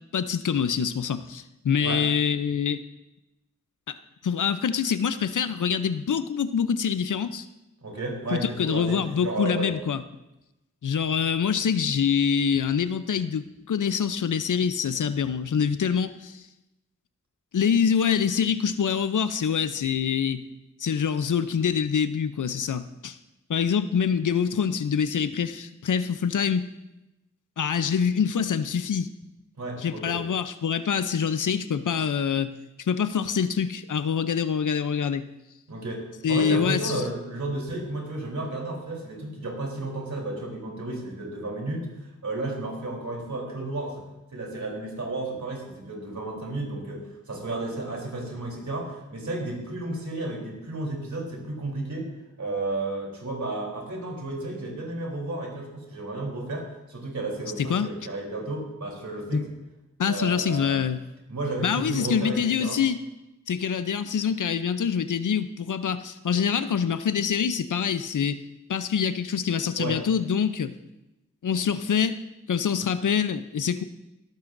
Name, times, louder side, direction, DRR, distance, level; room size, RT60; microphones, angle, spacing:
voice 1, 0.1-2.8 3.9-4.0 4.2-7.5 8.3-10.0 10.8-16.4 17.5-20.4 20.8-23.2 23.5-26.7 27.6-29.1 29.8-32.5 32.8-35.3 36.2-37.1 57.6-57.9 59.3-59.4 60.0-61.0 61.6-63.0 63.5-68.4 68.7-70.7 71.4-72.2 72.5-73.8, left 7 dB, 85° left, 12 dB, 0.6 m, -25 dB
voice 2, 7.8-9.7 29.6-30.2 35.7-44.0 44.3-52.1 52.4-59.5 60.0-60.9 61.3-62.8 69.8-70.0, right 2 dB, 70° right, -1 dB, 3.5 m, -32 dB
17.0 x 13.5 x 2.6 m, 0.95 s
wide cardioid pair, 55°, 30 cm